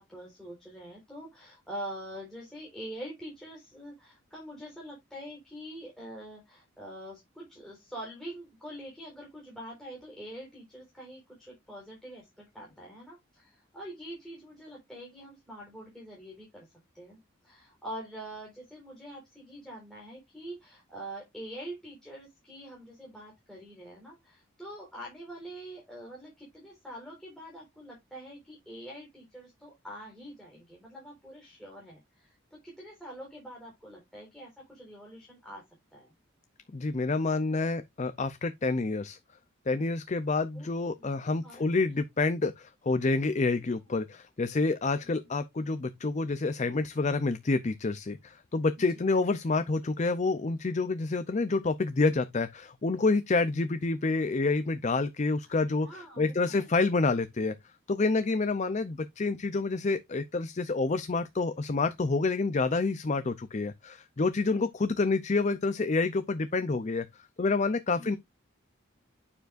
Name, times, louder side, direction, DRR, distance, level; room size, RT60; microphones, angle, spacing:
voice 1, 0.0-16.7 16.9-17.2 17.4-32.4 32.6-35.6 35.9-36.1 40.5-41.6 45.0-45.3 48.8-49.0 55.8-56.6 67.9-68.2, right 1 dB, ahead, 4.2 m, -45 dB
voice 2, 36.7-39.2 39.7-57.5 57.9-68.2, left 3 dB, 35° left, 0.5 m, -28 dB
9.2 x 7.0 x 2.5 m
head